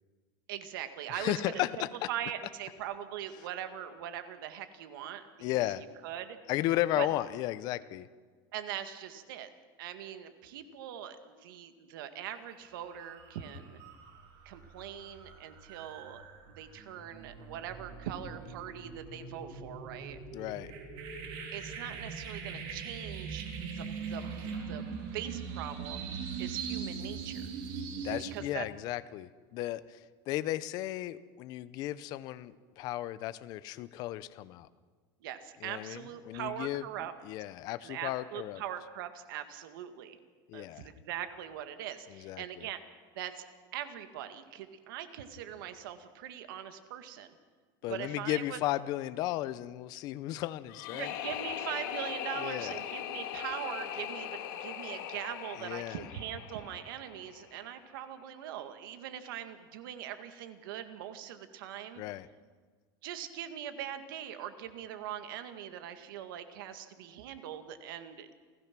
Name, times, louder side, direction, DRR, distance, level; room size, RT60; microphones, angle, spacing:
voice 1, 0.5-5.6 6.0-6.4 7.0-7.1 8.5-9.5 9.8-13.8 14.5-20.2 21.5-24.9 25.1-26.1 26.4-27.4 28.3-28.7 35.2-37.1 37.8-40.2 40.5-42.8 43.2-43.4 43.7-47.3 47.9-48.6 50.9-62.0 63.0-68.3, right 10 dB, 70° right, 9 dB, 1.9 m, -41 dB
voice 2, 1.1-2.1 5.4-5.8 6.5-8.1 20.3-20.7 28.0-30.0 30.3-34.7 35.6-36.8 37.2-38.6 40.5-40.9 42.1-42.6 47.8-51.1 52.4-52.8 55.6-56.0 62.0-62.3, left 15 dB, 35° left, 15 dB, 0.6 m, -34 dB
sound 1, 12.3-12.6 12.9-28.4, right 5 dB, 45° right, 3.7 m, -41 dB
sound 2, 50.7-57.7, left 11 dB, 60° left, 1.8 m, -40 dB
28.5 x 15.5 x 6.0 m, 1.5 s
supercardioid pair, 180°, 12 cm